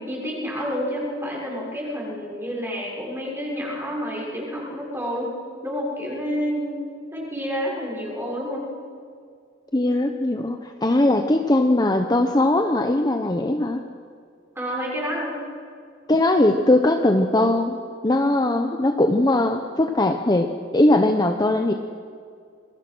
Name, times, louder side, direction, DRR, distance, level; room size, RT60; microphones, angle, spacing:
voice 1, 0.0-5.3 5.6-6.8 7.1-8.7 14.5-15.4, equal, 10° right, -3 dB, 6.3 m, -29 dB
voice 2, 9.7-13.8 16.1-17.8 18.0-21.7, left 1 dB, 20° left, 5 dB, 0.9 m, -20 dB
26.5 x 21.5 x 6.2 m, 2.2 s
head